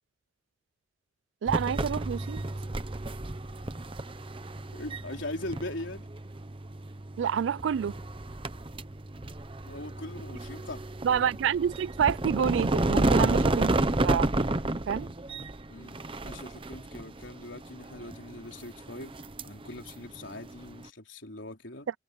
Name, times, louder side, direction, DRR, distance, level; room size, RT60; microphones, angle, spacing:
voice 1, 1.4-2.4 7.2-8.0 11.0-14.3 14.9-15.1, right 8 dB, 75° right, 0.3 m, -28 dB
sound 1, 1.5-20.9, right 2 dB, 25° right, 0.9 m, -32 dB
voice 2, 4.7-6.1 9.6-10.8 11.1-11.3 15.0-15.1 15.7-19.2 19.4-21.9, left 1 dB, 70° left, 4.1 m, -41 dB
head